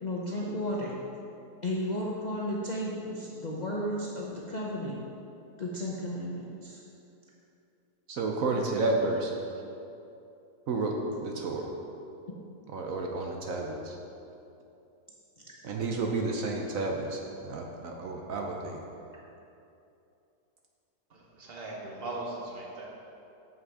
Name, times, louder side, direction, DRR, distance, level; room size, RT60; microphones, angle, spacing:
voice 1, 0.0-1.0 1.6-4.9 5.6-6.8 12.3-12.4, equal, 65° left, -4 dB, 0.4 m, -33 dB
voice 2, 8.1-9.3 10.7-10.9 11.2-11.7 12.7-14.0 15.6-18.8, right 3 dB, 60° right, 1 dB, 1.0 m, -31 dB
voice 3, 21.1-22.9, right 2 dB, 40° right, -3 dB, 1.3 m, -39 dB
7.6 x 6.0 x 4.8 m, 2.7 s
omnidirectional pair, 1.8 m